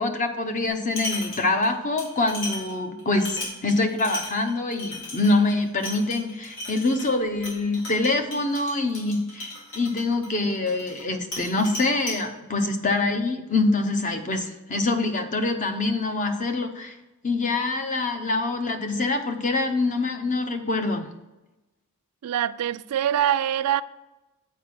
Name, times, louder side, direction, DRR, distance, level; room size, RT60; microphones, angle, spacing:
voice 1, 0.0-17.0 17.2-21.1, left 2 dB, 35° left, 0.7 m, -25 dB
sound 1, 0.7-1.7 2.0-11.0 11.3-12.2, left 1 dB, 60° left, 3.2 m, -36 dB
voice 2, 22.2-23.8, right 10 dB, 90° right, 0.3 m, -24 dB
8.0 x 4.6 x 6.0 m
head